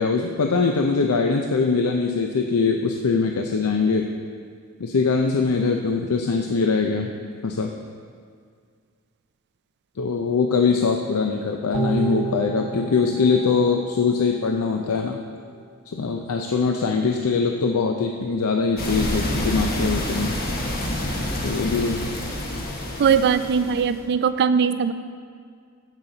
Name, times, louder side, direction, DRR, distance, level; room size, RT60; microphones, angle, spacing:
voice 1, 0.0-4.1 4.8-7.1 7.4-7.7 10.0-15.2 15.9-20.3 21.4-22.1, left 4 dB, 75° left, 3 dB, 0.5 m, -22 dB
sound 1, 11.7-15.1 15.4-15.5, right 5 dB, 70° right, 0.7 m, -32 dB
sound 2, 18.8-24.0, left 1 dB, 45° left, 1.2 m, -28 dB
voice 2, 23.0-24.9, right 6 dB, 50° right, 12 dB, 0.4 m, -20 dB
14.5 x 5.7 x 3.9 m, 2.1 s
head